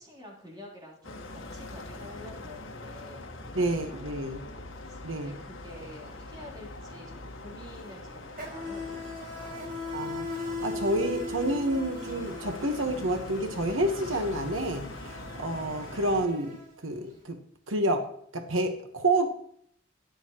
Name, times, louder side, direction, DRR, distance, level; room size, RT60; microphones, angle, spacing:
voice 1, 0.0-9.7, left 1 dB, 20° right, -3 dB, 3.4 m, -49 dB
sound 1, 1.0-16.3, left 2 dB, 80° left, 1.5 m, -43 dB
voice 2, 3.5-4.4 5.0-5.3 9.9-16.6 16.8-17.4 17.7-18.1 18.3-19.3, right 1 dB, 85° right, 5 dB, 1.3 m, -29 dB
Insect, 5.7-5.9 6.1-17.1, left 2 dB, 45° right, 4.9 m, -40 dB
13.0 x 10.5 x 3.0 m, 0.65 s
head